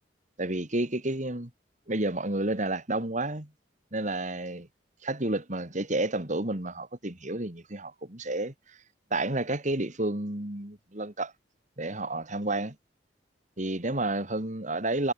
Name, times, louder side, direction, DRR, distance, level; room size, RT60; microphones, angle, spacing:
voice 1, 0.4-1.5 1.9-3.5 3.9-4.7 5.0-8.5 9.1-11.3 11.8-12.7 13.6-15.1, right 2 dB, 40° right, 2.9 m, -30 dB
head